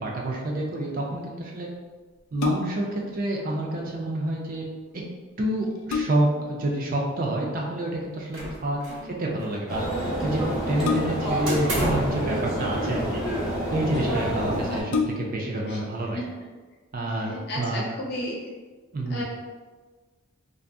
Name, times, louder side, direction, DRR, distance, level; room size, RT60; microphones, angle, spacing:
voice 1, 0.0-1.7 2.3-4.6 4.9-5.0 5.4-9.8 10.2-13.2 13.7-14.9 15.2-16.2 16.9-17.8 18.9-19.2, right 1 dB, 40° right, -1 dB, 0.4 m, -28 dB
sound 1, 2.2-2.9 5.0-5.1 5.5-6.5 8.0-8.4 10.8-11.4 12.4-13.1 13.9-14.0 14.3-14.4 14.8-15.5 16.0-16.1, left 4 dB, 90° left, 0.4 m, -29 dB
sound 2, 8.3-9.1 9.4-10.3 11.5-12.2, right 1 dB, 80° right, 0.8 m, -31 dB
sound 3, 9.7-14.8, equal, 5° right, 0.7 m, -28 dB
voice 2, 14.5-14.8 15.7-15.8 16.1-16.2 17.3-18.5 19.1-19.2, left 1 dB, 50° left, -3 dB, 0.6 m, -33 dB
2.5 x 2.0 x 3.4 m, 1.4 s
head